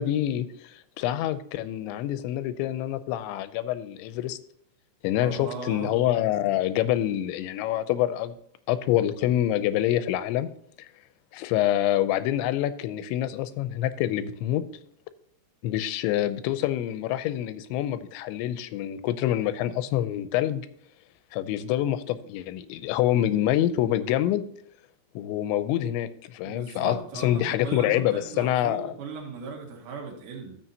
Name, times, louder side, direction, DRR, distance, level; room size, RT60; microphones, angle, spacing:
voice 1, 0.0-4.4 5.0-8.4 8.7-10.5 11.3-14.7 15.6-20.7 21.3-24.4 25.2-28.9, left 12 dB, 90° left, 12 dB, 3.0 m, -26 dB
voice 2, 5.2-5.9 26.4-30.6, right 5 dB, 55° right, 0 dB, 3.0 m, -38 dB
13.5 x 7.5 x 2.8 m, 0.68 s
omnidirectional pair, 5.1 m